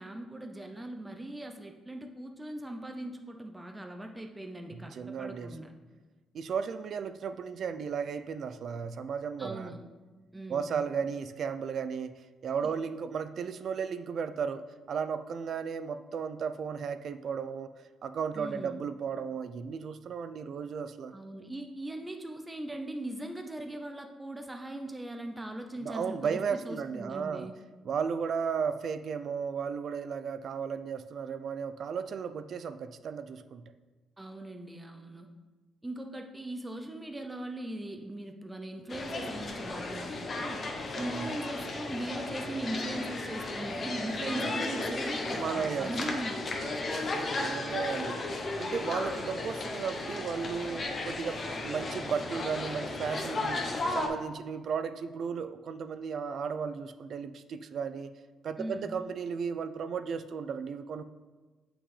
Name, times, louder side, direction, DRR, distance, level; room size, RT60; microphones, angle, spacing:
voice 1, 0.0-5.8 9.4-9.8 10.3-10.8 18.4-18.8 21.1-27.6 34.2-35.3 35.8-40.6 41.0-46.5 58.6-58.9, right 1 dB, 15° right, 4 dB, 0.6 m, -39 dB
voice 2, 4.7-5.6 6.3-9.7 10.5-12.1 12.4-21.1 25.8-27.5 27.8-33.6 41.0-41.3 44.2-44.5 45.3-45.9 46.9-48.2 48.6-58.1 58.4-61.0, right 6 dB, 60° right, 11 dB, 0.4 m, -35 dB
sound 1, 38.9-54.1, left 2 dB, 45° left, 1.0 m, -35 dB
7.4 x 5.9 x 3.2 m, 1.3 s
cardioid pair, 90°, 0 cm